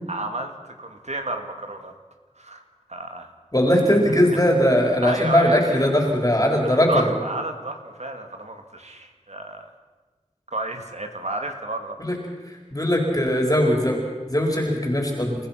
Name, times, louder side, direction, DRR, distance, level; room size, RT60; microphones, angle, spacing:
voice 1, 0.1-1.9 2.4-2.6 2.9-3.3 3.9-4.0 5.0-5.8 6.6-9.7 10.5-12.0, right 2 dB, 70° right, 4 dB, 2.5 m, -31 dB
voice 2, 3.5-7.1 12.0-12.2 12.5-14.0 14.3-15.4, equal, 30° left, 1 dB, 4.3 m, -20 dB
29.5 x 15.0 x 5.9 m, 1.3 s
wide cardioid pair, 50°, 12 cm